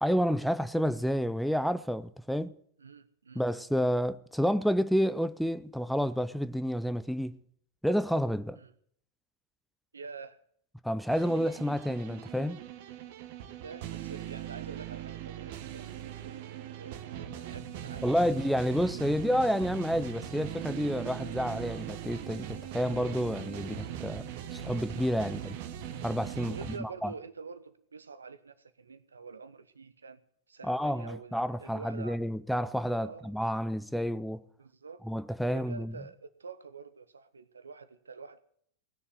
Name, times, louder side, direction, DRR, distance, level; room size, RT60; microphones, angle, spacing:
voice 1, 0.0-2.5 3.4-7.4 7.8-8.6 10.8-12.6 18.0-25.6 26.0-27.1 30.6-34.4 35.1-35.9, equal, ahead, 0.6 m, -30 dB
voice 2, 2.8-3.4 8.5-8.7 9.9-10.4 13.6-18.2 25.2-25.4 26.5-30.2 30.5-32.2 33.0-33.3 34.6-35.0 35.4-38.4, right 5 dB, 75° right, 1.0 m, -47 dB
sound 1, 11.1-26.8, right 10 dB, 50° right, 1.3 m, -40 dB
18.5 x 6.9 x 8.1 m
figure-of-eight pair, 90°, 0 cm